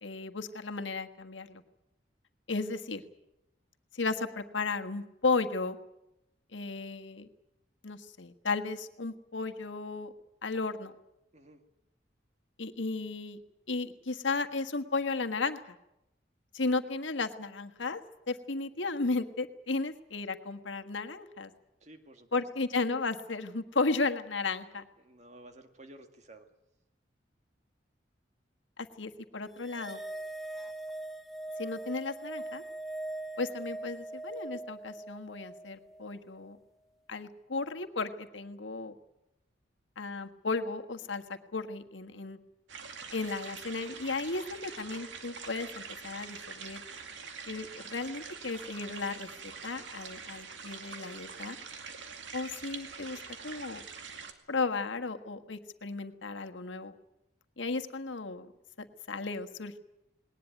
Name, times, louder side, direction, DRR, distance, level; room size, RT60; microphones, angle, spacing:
voice 1, 0.0-1.6 2.5-3.0 3.9-5.8 6.5-7.3 7.8-10.1 10.4-10.9 12.6-13.4 13.7-15.7 16.5-18.0 18.3-21.5 22.3-24.8 28.8-30.0 31.6-32.6 33.4-36.6 37.1-38.9 40.0-42.4 43.1-46.8 47.5-49.3 49.6-51.6 52.3-53.8 54.5-56.9 57.6-58.5 58.8-59.8, left 3 dB, 90° left, 7 dB, 1.5 m, -34 dB
voice 2, 21.8-22.4 25.0-26.5, right 1 dB, 40° right, 6 dB, 2.0 m, -53 dB
sound 1, 29.6-36.2, right 2 dB, ahead, 1.2 m, -41 dB
sound 2, 42.7-54.3, right 5 dB, 85° right, 2.3 m, -45 dB
20.0 x 19.0 x 9.2 m, 0.87 s
head